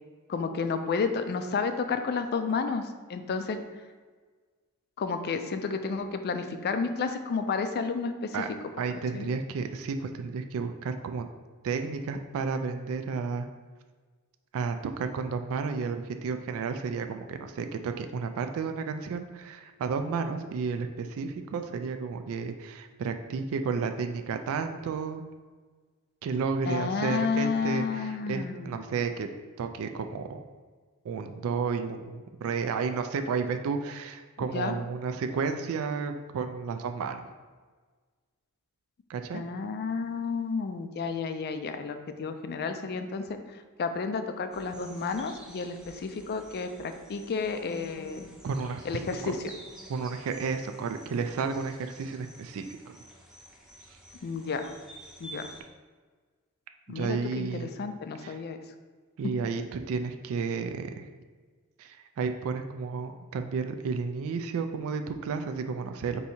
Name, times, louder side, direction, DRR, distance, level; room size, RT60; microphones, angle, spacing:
voice 1, 0.3-3.6 5.0-8.4 9.1-9.3 26.7-28.8 34.4-34.7 39.3-43.4 43.8-48.3 48.9-49.4 54.2-54.7 55.2-55.5 56.9-58.6, left 5 dB, 45° left, 8 dB, 0.4 m, -31 dB
voice 2, 8.8-11.3 11.6-13.5 14.5-25.2 26.2-29.3 29.6-30.5 31.0-37.3 39.1-39.4 48.4-48.9 49.2-49.3 49.9-53.0 56.9-57.7 58.2-58.4 59.2-61.1 61.8-66.2, right 5 dB, 65° right, 7 dB, 0.3 m, -32 dB
sound 1, 44.5-55.6, right 1 dB, 5° right, 0.7 m, -50 dB
4.6 x 2.7 x 4.2 m, 1.5 s
head